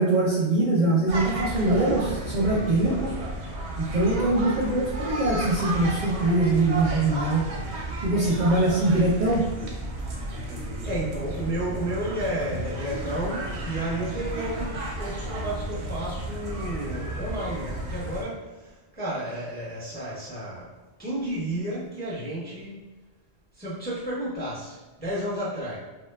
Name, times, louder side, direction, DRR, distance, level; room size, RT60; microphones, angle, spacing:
voice 1, 0.0-3.1 3.8-7.4 8.0-9.4, right 2 dB, 55° right, -6 dB, 0.5 m, -23 dB
sound 1, 1.1-18.2, right 1 dB, 90° right, 0.9 m, -33 dB
voice 2, 10.8-20.7 21.0-22.8 23.6-25.8, right 1 dB, 10° left, -8 dB, 0.6 m, -32 dB
2.9 x 2.2 x 2.2 m, 1.2 s
omnidirectional pair, 1.1 m